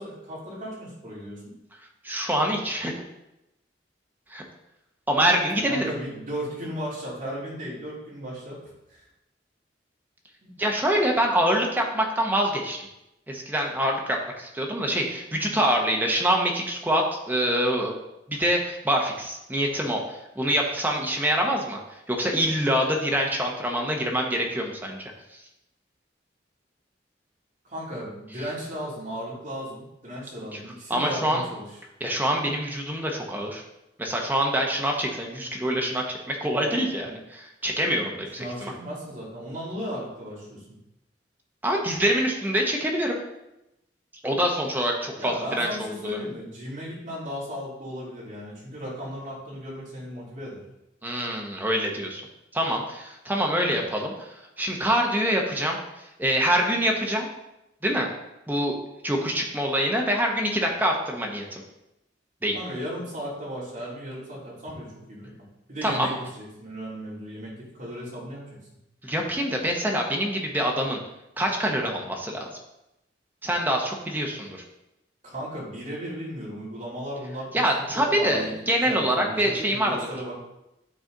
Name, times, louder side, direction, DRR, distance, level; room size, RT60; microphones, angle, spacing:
voice 1, 0.0-1.5 5.7-9.1 10.4-10.5 27.6-31.6 38.4-40.6 45.2-50.6 62.5-65.3 65.7-68.6 75.2-77.8 78.2-78.5 78.8-80.4, equal, 45° right, -6 dB, 2.8 m, -36 dB
voice 2, 2.0-2.9 4.3-4.4 5.1-5.9 10.6-12.8 13.3-17.9 18.3-21.8 22.1-25.1 30.9-31.4 32.0-33.6 34.0-38.7 41.6-43.1 44.2-46.2 51.0-52.2 52.5-54.3 54.6-55.8 56.2-57.3 57.8-58.1 58.5-58.8 59.0-61.6 62.4-62.6 65.8-66.1 69.0-71.0 71.4-72.5 73.4-74.6 77.5-80.1, equal, 10° right, 0 dB, 0.9 m, -25 dB
9.1 x 4.0 x 3.8 m, 0.90 s
head